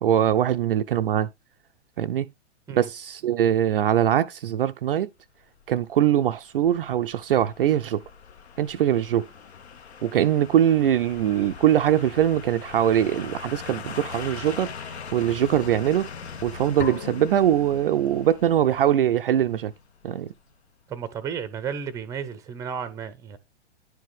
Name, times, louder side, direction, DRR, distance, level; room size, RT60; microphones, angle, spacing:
voice 1, 0.0-1.3 2.0-2.3 2.8-5.1 5.7-8.0 8.6-9.3 10.0-16.1 16.4-19.7 20.0-20.3, right 10 dB, 50° right, 0.4 m, -22 dB
sound 1, 5.6-20.5 20.8-20.9, left 6 dB, 65° left, 0.9 m, -41 dB
sound 2, 16.8-18.6, left 7 dB, 45° left, 1.1 m, -38 dB
voice 2, 20.9-23.4, right 7 dB, 10° right, 0.6 m, -33 dB
10.5 x 4.8 x 3.3 m
figure-of-eight pair, 105°, 36 cm